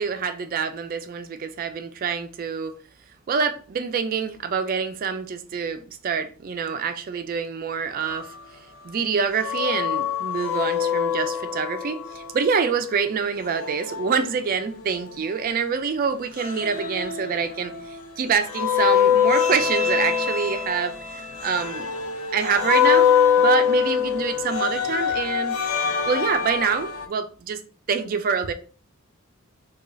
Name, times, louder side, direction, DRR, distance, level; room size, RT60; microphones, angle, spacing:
voice 1, 0.0-2.7 3.3-8.3 8.8-21.9 22.3-25.6 26.1-27.6 27.9-28.5, right 6 dB, 40° right, 0.3 m, -26 dB
sound 1, 9.4-12.3 13.5-15.2 16.4-18.0 18.5-27.1, left 8 dB, 80° left, 0.6 m, -24 dB
4.8 x 2.3 x 2.6 m
head